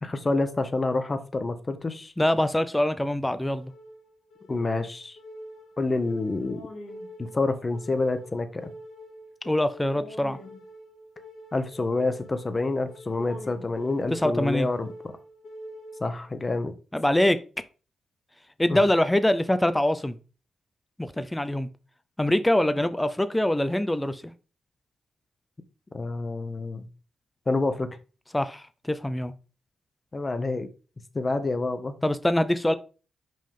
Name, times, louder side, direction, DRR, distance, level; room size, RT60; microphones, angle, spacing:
voice 1, 0.0-2.1 4.5-5.2 5.8-6.6 7.2-8.7 11.5-14.9 16.0-16.7 18.7-18.8 25.9-26.9 27.5-27.9 30.1-30.7 31.1-31.9, left 3 dB, 25° left, 9 dB, 0.9 m, -28 dB
voice 2, 2.2-3.7 9.5-10.4 14.1-14.7 16.9-17.4 18.6-20.2 21.0-21.7 22.2-24.2 28.3-29.3 32.0-32.7, left 1 dB, 10° left, 12 dB, 0.5 m, -24 dB
sound 1, 3.4-16.4, equal, 70° left, 1.9 m, -45 dB
5.3 x 5.2 x 3.7 m, 0.35 s
cardioid pair, 100°, 0 cm